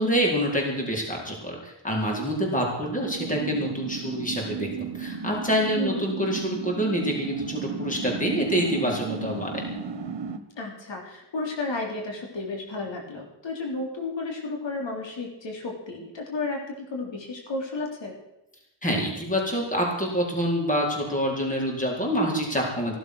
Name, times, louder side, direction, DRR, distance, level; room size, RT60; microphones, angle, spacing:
voice 1, 0.0-9.7 18.8-23.0, equal, 15° left, -1 dB, 4.5 m, -26 dB
sound 1, 3.0-10.4, right 5 dB, 70° right, 1.5 m, -34 dB
voice 2, 5.8-6.1 10.6-18.1, left 3 dB, 75° left, 1 dB, 3.6 m, -32 dB
16.5 x 11.5 x 6.3 m, 0.89 s
wide cardioid pair, 120°, 44 cm